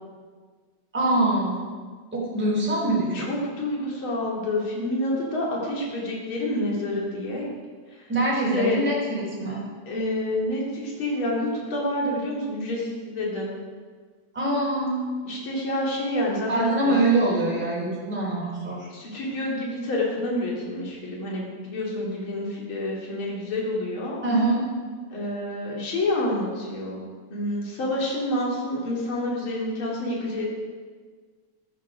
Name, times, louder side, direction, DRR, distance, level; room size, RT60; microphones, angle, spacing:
voice 1, 0.9-1.6 2.1-3.3 8.1-9.6 14.3-15.1 16.5-18.9 24.2-24.6, right 2 dB, 5° right, -5 dB, 3.7 m, -24 dB
voice 2, 3.1-7.5 8.5-8.8 9.9-13.5 15.3-16.9 18.9-24.2 25.1-30.4, left 1 dB, 45° left, -3 dB, 3.5 m, -28 dB
14.5 x 11.5 x 5.2 m, 1.5 s
omnidirectional pair, 3.3 m